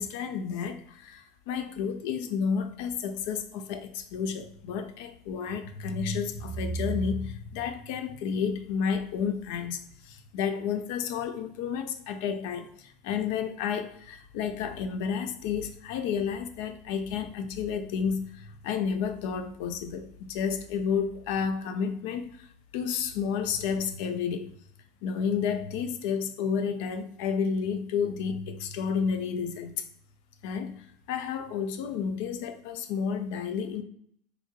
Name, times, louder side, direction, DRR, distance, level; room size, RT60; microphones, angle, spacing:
voice 1, 0.0-22.5 22.7-24.5 25.0-29.8 30.4-30.8 31.1-33.8, left 6 dB, 70° left, 0.4 m, -31 dB
2.9 x 2.5 x 2.4 m
hypercardioid pair, 90°, 0 cm